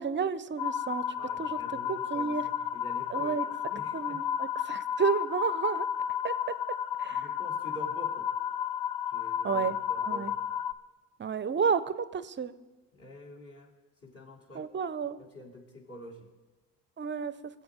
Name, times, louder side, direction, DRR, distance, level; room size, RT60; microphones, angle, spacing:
voice 1, 0.0-1.0 1.4-1.6 1.9-2.4 3.1-3.5 3.9-5.9 6.2-6.3 7.0-7.3 9.4-9.8 10.0-10.3 11.2-12.5 14.5-15.2 17.0-17.3, right 6 dB, 30° right, 15 dB, 0.7 m, -31 dB
sound 1, 0.6-10.7, left 9 dB, 75° left, 0.7 m, -32 dB
voice 2, 1.2-3.4 3.7-4.2 7.1-8.3 9.1-10.3 12.9-13.7 14.0-14.7 15.2-16.3, equal, 35° left, -2 dB, 3.1 m, -47 dB
20.5 x 7.9 x 5.1 m, 1.2 s
supercardioid pair, 65°, 39 cm